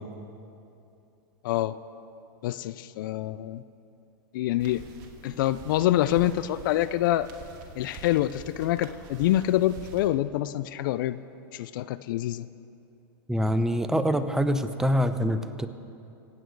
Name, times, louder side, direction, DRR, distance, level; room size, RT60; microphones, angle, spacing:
voice 1, 1.4-1.8 2.4-3.6 4.3-4.8 5.2-7.3 7.8-11.2 11.5-12.5, left 14 dB, 65° left, 15 dB, 0.5 m, -26 dB
sound 1, 4.6-10.1, right 5 dB, 55° right, 2.2 m, -46 dB
voice 2, 13.3-15.7, equal, 5° right, 10 dB, 0.7 m, -25 dB
26.0 x 9.0 x 4.7 m, 2.7 s
hypercardioid pair, 115°, 12 cm